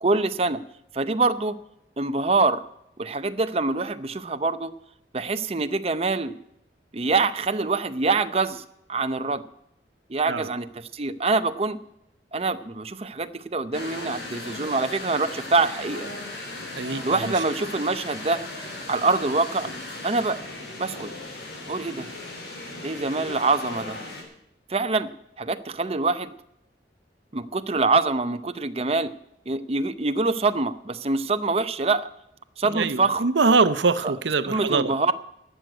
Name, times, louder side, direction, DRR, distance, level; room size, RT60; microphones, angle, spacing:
voice 1, 0.0-0.6 0.9-1.6 2.0-2.6 3.0-4.7 5.1-6.3 6.9-8.6 8.9-9.4 10.1-11.8 12.3-16.1 17.0-18.4 18.9-19.7 20.0-20.4 20.8-21.1 21.7-22.1 22.8-24.0 24.7-25.1 25.4-26.3 27.3-29.1 29.5-32.1 32.6-33.3 34.0-34.1 34.4-35.1, right 3 dB, 35° right, 11 dB, 0.7 m, -25 dB
sound 1, 13.7-24.2, left 2 dB, 70° left, 4.2 m, -37 dB
voice 2, 16.7-17.3 32.7-34.9, right 4 dB, 85° right, 13 dB, 0.7 m, -23 dB
12.5 x 7.7 x 9.2 m, 0.79 s
head